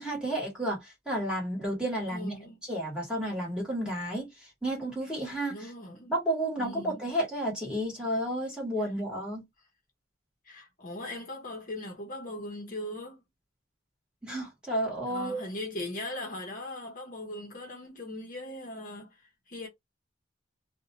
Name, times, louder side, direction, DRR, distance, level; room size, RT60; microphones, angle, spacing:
voice 1, 0.0-2.3 2.7-5.7 6.1-9.4 14.2-15.4, right 1 dB, 5° right, 1.3 m, -32 dB
voice 2, 2.1-2.6 5.5-6.1 6.6-7.0 8.8-8.9 10.4-13.2 15.1-19.7, left 1 dB, 45° left, 0.8 m, -39 dB
2.6 x 2.1 x 2.8 m
head